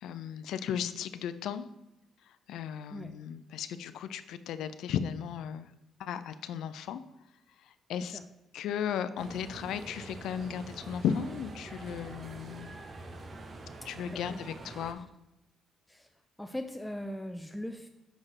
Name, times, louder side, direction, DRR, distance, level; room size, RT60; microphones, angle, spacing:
voice 1, 0.0-1.7 2.5-5.7 6.0-7.0 7.6-8.2 8.5-12.7 13.8-15.1, left 8 dB, 80° left, 12 dB, 0.4 m, -35 dB
sound 1, 9.2-14.9, right 2 dB, 40° right, 0.8 m, -45 dB
voice 2, 14.1-14.4 15.9-16.1 16.4-17.9, left 1 dB, 5° left, 5 dB, 0.4 m, -39 dB
6.1 x 3.3 x 5.6 m, 0.89 s
cardioid pair, 90°, 0 cm